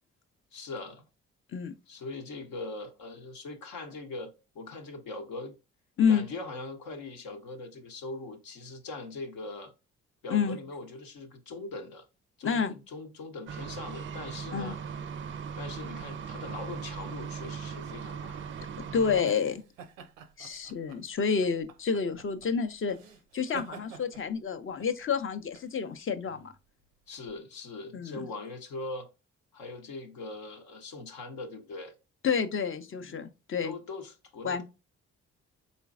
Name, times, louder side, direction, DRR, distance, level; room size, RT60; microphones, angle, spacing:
voice 1, 0.5-1.0 1.9-5.6 6.1-9.7 10.2-12.0 12.4-14.8 15.6-18.4 27.1-29.1 29.5-31.9 32.9-33.2 33.6-34.6, left 2 dB, 65° left, 0.8 m, -41 dB
voice 2, 12.4-12.7 14.5-14.8 18.9-19.6 20.4-23.0 23.3-26.5 27.9-28.3 32.2-33.7 34.4-34.6, left 6 dB, 35° left, 0.6 m, -29 dB
sound 1, 13.5-19.2, right 6 dB, 35° right, 0.4 m, -39 dB
sound 2, 19.2-27.4, right 7 dB, 90° right, 0.5 m, -50 dB
4.1 x 3.8 x 2.3 m
hypercardioid pair, 40°, 38 cm